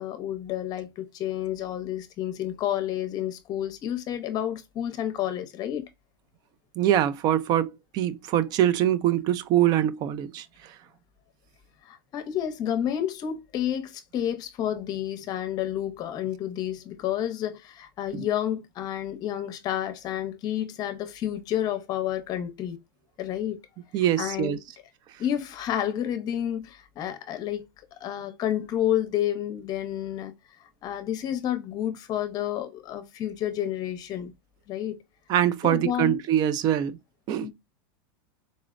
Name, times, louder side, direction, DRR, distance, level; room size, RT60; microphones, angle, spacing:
voice 1, 0.0-5.9 11.8-22.8 23.2-23.6 24.2-24.6 25.2-27.7 28.0-30.3 30.8-34.3 34.7-35.0 35.6-36.2 37.4-37.5, left 11 dB, 35° left, 0.7 m, -30 dB
voice 2, 6.8-10.5 18.1-18.3 23.9-24.6 35.3-37.0 37.3-37.5, right 11 dB, 35° right, 0.4 m, -24 dB
4.1 x 2.0 x 2.4 m
supercardioid pair, 140°, 12 cm